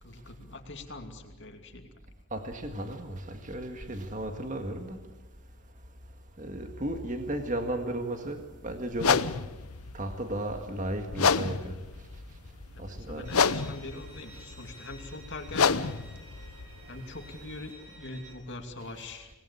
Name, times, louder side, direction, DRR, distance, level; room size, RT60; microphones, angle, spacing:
voice 1, 0.0-1.9 12.7-15.9 16.9-19.3, left 2 dB, 55° left, 2.6 m, -43 dB
voice 2, 2.3-5.0 6.4-9.3 9.9-11.7 12.8-13.3, right 1 dB, 35° right, 1.9 m, -34 dB
sound 1, 8.9-17.7, left 5 dB, 80° left, 0.8 m, -30 dB
Bowed string instrument, 13.2-18.3, right 2 dB, 70° right, 5.5 m, -52 dB
26.5 x 19.5 x 8.5 m
head